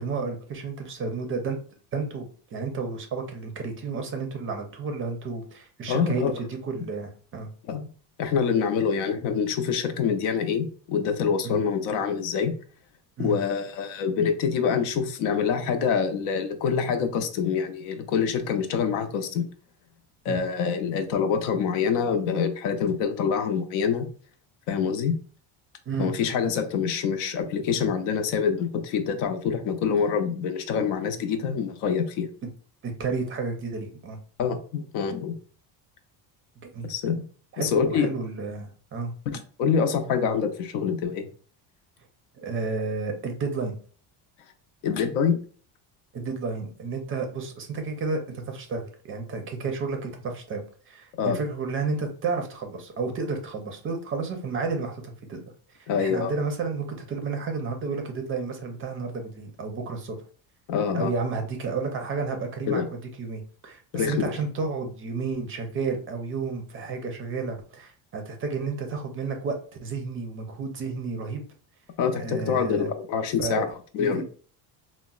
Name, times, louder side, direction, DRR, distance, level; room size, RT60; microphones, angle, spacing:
voice 1, 0.0-1.6 1.9-7.5 11.4-11.6 13.2-13.4 20.3-20.4 25.9-26.1 32.8-34.2 36.6-36.9 37.5-39.1 42.4-43.8 46.1-50.6 50.9-55.4 55.7-60.1 60.9-69.6 69.8-71.4 72.2-72.9 73.4-73.6 74.0-74.2, right 4 dB, 30° right, 5 dB, 0.4 m, -31 dB
voice 2, 5.9-6.3 7.7-7.8 8.2-12.5 13.2-19.5 20.2-24.1 24.7-25.2 26.0-32.3 34.4-35.3 36.9-37.2 37.6-38.1 39.3-41.3 44.8-45.4 51.2-51.4 55.9-56.3 60.7-61.1 62.7-62.9 63.9-64.3 72.0-73.7 73.9-74.2, left 6 dB, 75° left, 7 dB, 0.6 m, -25 dB
3.9 x 2.1 x 2.3 m, 0.42 s
cardioid pair, 145°, 43 cm